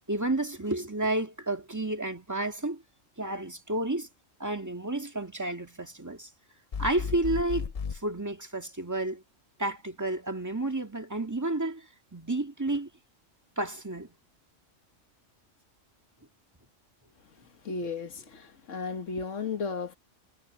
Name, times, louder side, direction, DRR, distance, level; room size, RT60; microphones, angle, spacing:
voice 1, 0.1-2.8 3.2-4.1 4.4-6.3 6.8-7.7 7.9-9.2 9.6-11.9 12.1-12.9 13.6-14.1, right 2 dB, 15° right, 2.0 m, -31 dB
sound 1, 6.7-8.0, left 6 dB, 45° left, 0.5 m, -34 dB
voice 2, 17.6-20.0, left 4 dB, 70° left, 1.7 m, -34 dB
omnidirectional pair, 1.3 m